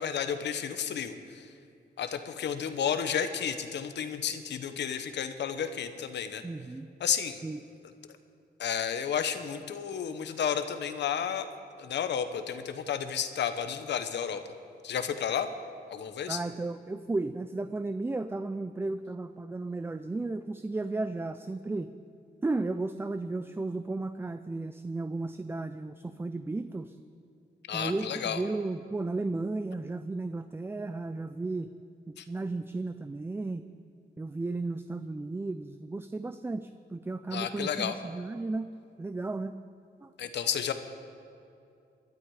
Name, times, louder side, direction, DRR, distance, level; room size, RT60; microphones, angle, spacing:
voice 1, 0.0-1.5 2.0-6.4 7.0-7.4 8.6-11.5 11.8-14.4 14.8-15.5 15.9-16.4 27.7-28.4 32.2-32.3 37.3-38.0 40.2-40.7, left 8 dB, 80° left, 9 dB, 1.1 m, -32 dB
voice 2, 6.4-6.9 7.4-7.6 16.3-21.9 22.4-27.0 27.7-31.7 32.1-33.7 34.2-38.7 39.0-39.5 40.0-40.1, right 2 dB, 15° right, 10 dB, 0.4 m, -34 dB
22.5 x 12.0 x 4.9 m, 2.6 s
wide cardioid pair, 145°, 18 cm